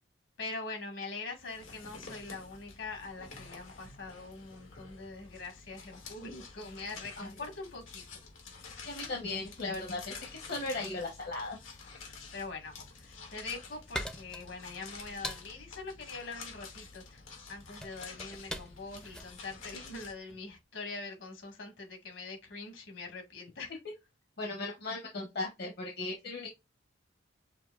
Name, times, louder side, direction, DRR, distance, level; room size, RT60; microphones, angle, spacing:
voice 1, 0.4-8.2 12.3-17.2 17.5-23.7, left 3 dB, 70° left, 1.7 m, -43 dB
sound 1, 1.4-20.1, left 4 dB, 90° left, 1.8 m, -49 dB
voice 2, 8.9-11.6 24.4-26.5, left 2 dB, 55° left, 1.0 m, -37 dB
sound 2, 13.8-20.5, equal, 5° left, 0.5 m, -44 dB
6.0 x 2.7 x 2.4 m
head